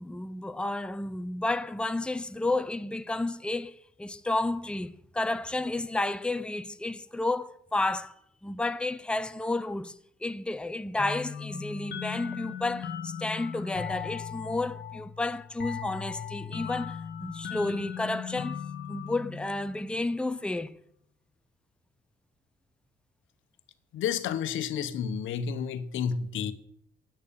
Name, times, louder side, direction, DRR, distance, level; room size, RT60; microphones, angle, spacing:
voice 1, 0.0-8.1 8.4-10.0 10.2-18.6 18.9-20.7, left 2 dB, 5° left, 0.7 m, -31 dB
sound 1, 11.0-20.3, left 8 dB, 60° left, 1.5 m, -38 dB
voice 2, 23.9-26.5, left 7 dB, 80° left, 1.1 m, -30 dB
9.9 x 9.1 x 6.9 m
cardioid pair, 90°, 20 cm